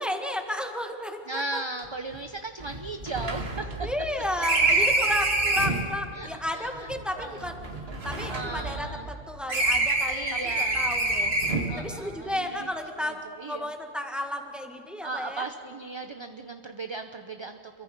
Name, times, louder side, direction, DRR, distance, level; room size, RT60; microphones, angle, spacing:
voice 1, 0.0-1.6 3.8-7.7 8.0-10.3 10.6-11.3 11.8-15.5, left 1 dB, ahead, 4 dB, 1.7 m, -33 dB
voice 2, 1.3-3.7 6.1-6.9 7.2-7.4 8.3-9.1 10.1-11.3 11.7-12.7 13.0-13.7 15.0-17.8, right 3 dB, 30° right, 7 dB, 0.7 m, -37 dB
sound 1, 1.8-1.9 2.1-2.2 2.6-5.9 6.7-9.2 9.5-11.8, right 2 dB, 65° right, 2.3 m, -27 dB
28.5 x 23.0 x 5.3 m, 2.7 s
omnidirectional pair, 1.1 m